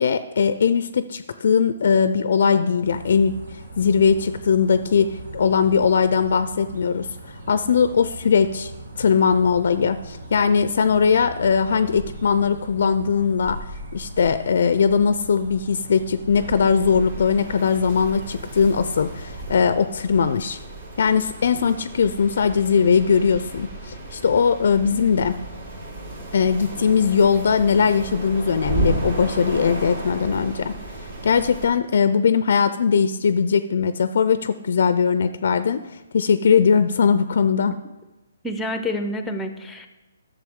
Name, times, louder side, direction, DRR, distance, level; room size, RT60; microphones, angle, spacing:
voice 1, 0.0-3.4 3.8-7.1 7.5-8.7 9.0-13.6 13.9-20.6 21.0-25.4 26.3-30.7 31.2-37.8, left 6 dB, 60° left, 12 dB, 0.4 m, -20 dB
sound 1, 2.8-19.7, right 2 dB, 80° right, 2.0 m, -39 dB
sound 2, 16.3-31.7, right 2 dB, 50° right, 3.0 m, -33 dB
voice 2, 38.4-39.9, left 1 dB, 5° left, 8 dB, 0.6 m, -28 dB
10.5 x 7.1 x 3.6 m, 1.1 s
hypercardioid pair, 165°, 0 cm